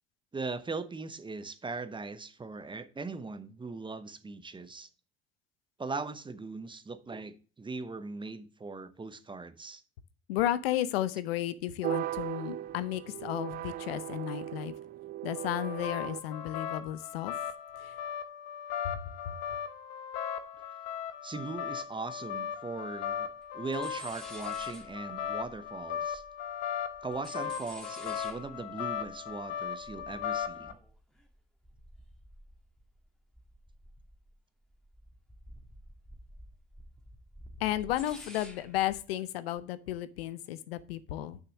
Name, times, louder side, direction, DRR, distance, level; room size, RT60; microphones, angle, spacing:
voice 1, 0.3-4.9 5.8-9.8 21.2-23.3 23.5-26.2 27.0-30.8, right 3 dB, 15° right, 0.9 m, -39 dB
voice 2, 10.3-14.7 15.2-17.3 17.8-18.0 18.8-19.0 19.3-19.4 37.6-41.4, left 13 dB, 90° left, 0.7 m, -33 dB
sound 1, 11.8-16.2, right 13 dB, 35° right, 0.4 m, -37 dB
sound 2, 15.4-30.7, left 8 dB, 65° left, 1.3 m, -38 dB
sound 3, 22.8-22.9 23.0-23.5 23.7-26.5 26.8-33.1 33.3-34.3 34.7-39.0, equal, ahead, 2.0 m, -52 dB
6.6 x 5.9 x 6.3 m
supercardioid pair, 90°, 29 cm